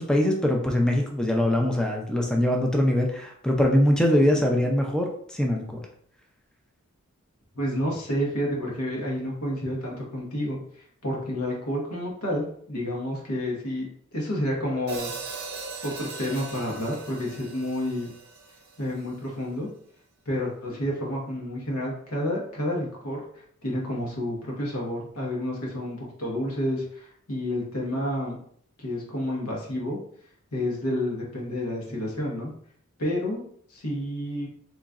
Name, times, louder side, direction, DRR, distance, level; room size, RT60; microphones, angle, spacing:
voice 1, 0.0-5.8, left 1 dB, 5° left, 1 dB, 0.4 m, -23 dB
voice 2, 7.5-13.9 14.1-15.2 15.8-18.1 18.8-19.7 20.3-28.4 28.8-30.0 30.5-32.5 33.0-33.4 33.7-34.5, left 1 dB, 90° left, -3 dB, 1.2 m, -30 dB
Hi-hat, 14.9-19.1, right 4 dB, 45° right, 0.6 m, -39 dB
3.7 x 3.0 x 2.4 m, 0.62 s
head